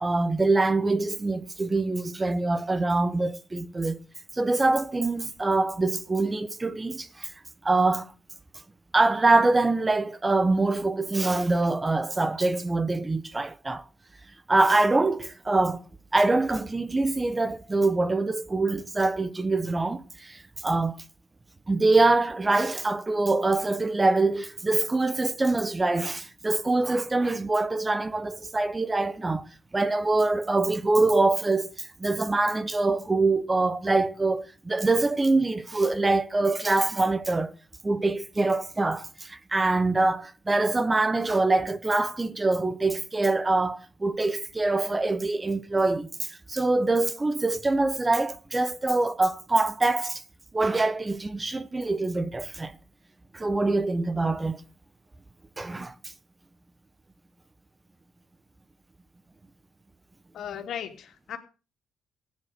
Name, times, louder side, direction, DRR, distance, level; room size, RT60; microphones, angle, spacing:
voice 1, 0.0-4.0 4.3-7.3 7.6-8.1 8.9-13.8 14.5-15.9 16.1-21.0 21.7-29.5 29.7-37.5 37.8-50.2 50.5-52.7 53.3-54.6 55.6-55.9, right 2 dB, 20° right, 0.9 m, -24 dB
voice 2, 60.3-61.4, left 9 dB, 70° left, 2.8 m, -36 dB
15.0 x 9.6 x 6.6 m
cardioid pair, 90°, 0 cm